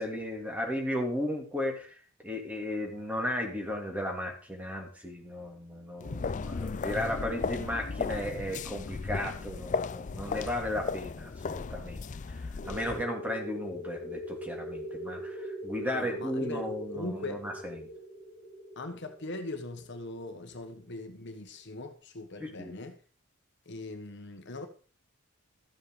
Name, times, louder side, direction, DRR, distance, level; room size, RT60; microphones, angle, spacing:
voice 1, 0.0-12.0 12.3-17.9 22.4-22.7, left 1 dB, 5° right, 2.8 m, -35 dB
sound 1, 6.0-13.0, left 4 dB, 35° left, 0.4 m, -35 dB
sound 2, 12.6-21.0, equal, 50° right, 5.1 m, -41 dB
voice 2, 15.8-17.4 18.8-23.0 23.6-24.7, left 2 dB, 55° left, 1.4 m, -40 dB
13.5 x 7.8 x 5.0 m
head